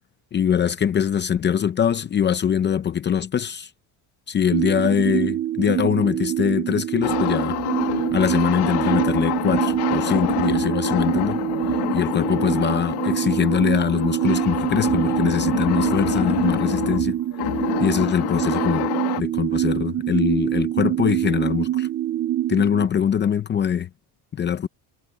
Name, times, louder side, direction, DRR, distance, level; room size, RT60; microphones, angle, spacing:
voice 1, 0.3-3.7 4.3-7.6 8.1-11.4 11.7-17.2 17.8-18.9 19.2-21.9 22.5-23.9 24.3-24.7, left 8 dB, 25° left, 0.6 m, -23 dB
sound 1, 4.5-22.9, right 13 dB, 30° right, 0.4 m, -25 dB
sound 2, 7.0-19.2, left 16 dB, 75° left, 2.2 m, -27 dB
cardioid pair, 165°, 40 cm